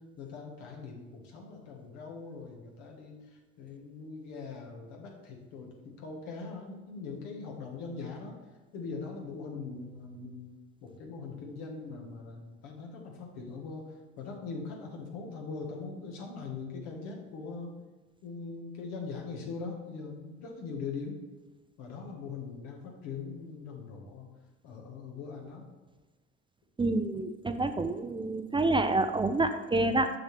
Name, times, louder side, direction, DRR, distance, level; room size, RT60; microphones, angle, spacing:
voice 1, 0.2-8.4 8.7-10.5 10.8-17.7 18.2-21.2 21.8-24.3 24.6-25.7, left 4 dB, 80° left, 1 dB, 1.5 m, -41 dB
voice 2, 26.8-30.1, right 2 dB, 15° right, 8 dB, 0.4 m, -28 dB
6.5 x 6.1 x 3.3 m, 1.2 s
hypercardioid pair, 70°, 30 cm